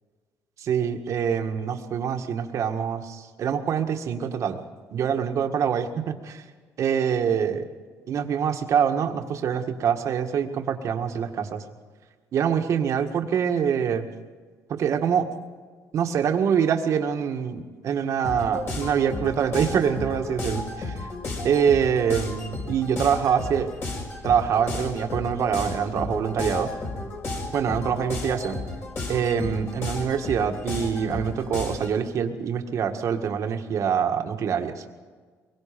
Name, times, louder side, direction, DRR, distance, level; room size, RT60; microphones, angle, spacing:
voice 1, 0.6-4.6 4.9-6.4 6.8-7.7 8.1-11.6 12.3-14.1 14.7-15.3 15.9-21.1 21.4-23.7 24.2-26.7 27.5-28.6 29.1-34.8, right 7 dB, 55° right, 6 dB, 1.7 m, -25 dB
sound 1, 18.2-32.0, left 2 dB, 45° left, 6.1 m, -33 dB
23.5 x 22.0 x 5.3 m, 1.5 s
cardioid pair, 100°, 6 cm